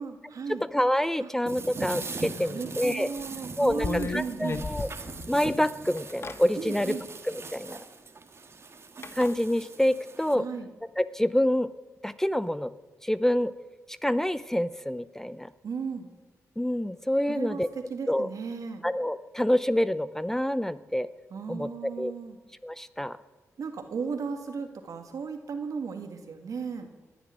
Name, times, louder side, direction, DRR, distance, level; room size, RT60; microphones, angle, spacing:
voice 1, 0.0-0.6 1.2-1.3 2.3-4.7 6.6-7.0 10.3-10.7 15.6-16.1 17.3-18.8 21.3-22.4 23.6-26.9, right 5 dB, 70° right, 6 dB, 1.9 m, -35 dB
voice 2, 0.7-3.1 3.6-4.9 5.3-7.0 7.3-7.8 9.1-10.4 11.0-11.7 12.0-12.7 13.0-13.5 14.0-15.5 16.6-17.7 18.1-18.3 18.8-21.1 21.5-22.1 22.6-23.2, left 1 dB, 5° left, 14 dB, 0.5 m, -27 dB
sound 1, 1.5-10.4, right 4 dB, 45° right, 1.6 m, -41 dB
sound 2, 3.2-3.3 3.7-5.5 6.0-6.4 7.7-7.8 9.0-9.3, left 4 dB, 45° left, 0.9 m, -34 dB
19.0 x 7.2 x 9.8 m, 1.3 s
cardioid pair, 65°, 6 cm